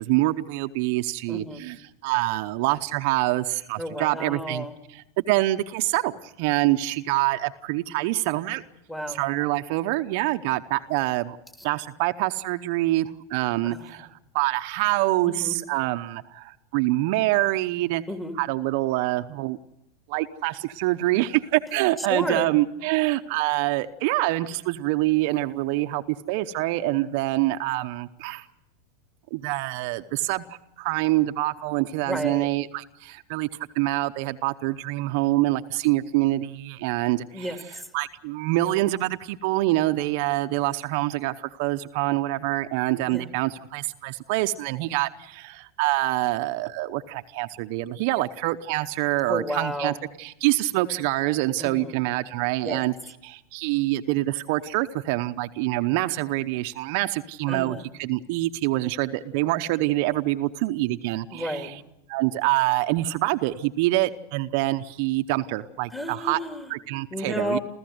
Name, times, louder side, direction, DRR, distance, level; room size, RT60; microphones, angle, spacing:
voice 1, 0.0-4.7 4.9-8.6 9.1-11.4 11.6-14.1 14.3-18.0 18.4-19.6 20.1-28.5 29.3-33.5 33.7-37.6 37.9-52.9 53.2-61.7 62.1-66.4 66.7-67.6, right 17 dB, 60° right, 8 dB, 0.8 m, -25 dB
voice 2, 1.3-1.6 3.8-4.7 8.9-9.2 13.6-13.8 15.2-15.5 18.1-18.4 22.0-22.5 32.0-32.5 37.3-37.9 43.0-43.2 49.3-50.0 51.6-51.9 52.6-52.8 57.5-57.8 61.3-61.7 65.9-66.7 67.1-67.6, equal, 10° left, 5 dB, 3.0 m, -31 dB
29.5 x 14.0 x 7.9 m, 0.86 s
hypercardioid pair, 100°, 0 cm